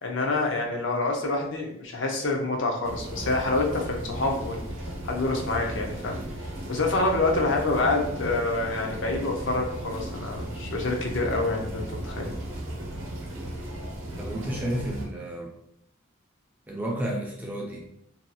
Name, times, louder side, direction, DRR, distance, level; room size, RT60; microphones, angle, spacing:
voice 1, 0.0-4.6 5.0-6.2 6.7-12.3, left 2 dB, 60° left, 1 dB, 0.5 m, -27 dB
sound 1, 2.8-15.1, right 1 dB, 75° right, 0.6 m, -36 dB
voice 2, 14.2-15.5 16.7-17.9, right 1 dB, 10° right, -2 dB, 0.3 m, -31 dB
2.6 x 2.3 x 2.7 m, 0.77 s
head